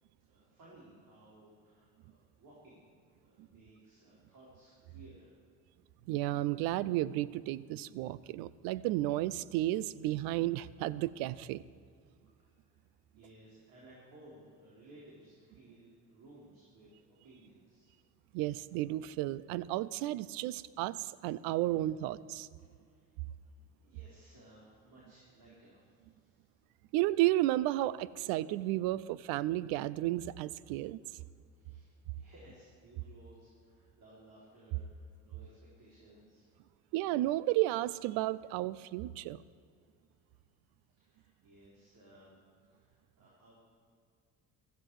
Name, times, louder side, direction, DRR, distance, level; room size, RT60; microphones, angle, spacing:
voice 1, 0.2-2.9 3.2-5.4 12.3-12.9 13.1-18.0 22.6-23.1 23.7-26.5 31.5-36.5 40.9-42.4 42.7-43.6, right 1 dB, 70° right, -6 dB, 4.3 m, -59 dB
voice 2, 6.1-11.6 18.3-22.5 26.9-31.0 36.9-39.4, right 16 dB, 85° right, 19 dB, 0.5 m, -33 dB
15.5 x 14.0 x 4.8 m, 2.2 s
supercardioid pair, 80°, 35 cm